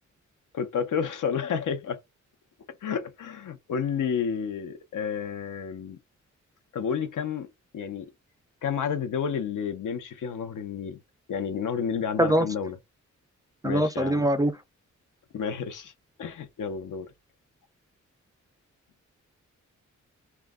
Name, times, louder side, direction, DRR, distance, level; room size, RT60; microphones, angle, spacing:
voice 1, 0.5-2.0 2.8-6.0 6.7-8.1 8.6-11.0 11.3-12.8 13.6-14.3 15.3-15.9 16.2-17.1, left 7 dB, 85° left, 0.7 m, -31 dB
voice 2, 13.6-14.5, right 1 dB, 10° right, 0.3 m, -22 dB
2.3 x 2.1 x 3.4 m
wide cardioid pair, 105°, 30 cm